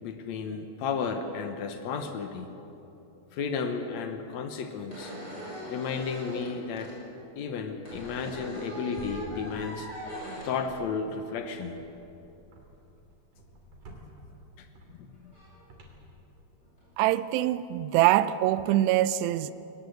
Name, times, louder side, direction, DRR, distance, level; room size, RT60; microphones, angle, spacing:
voice 1, 0.0-2.5 3.3-5.1 5.7-6.9 7.4-9.9 10.4-11.7 14.6-15.3, left 5 dB, 85° left, 7 dB, 1.5 m, -33 dB
sound 1, 4.5-4.6 4.9-7.0 7.8-10.5 11.2-11.4 14.3-14.4 15.3-15.6 16.6-16.9, right 1 dB, 20° left, 6.9 m, -40 dB
sound 2, 7.9-8.7 8.9-10.0 10.4-11.2 11.7-16.8, equal, 50° right, 3.9 m, -50 dB
voice 2, 17.0-19.5, right 14 dB, 85° right, 14 dB, 2.8 m, -24 dB
22.0 x 19.0 x 8.0 m, 2.9 s
omnidirectional pair, 4.8 m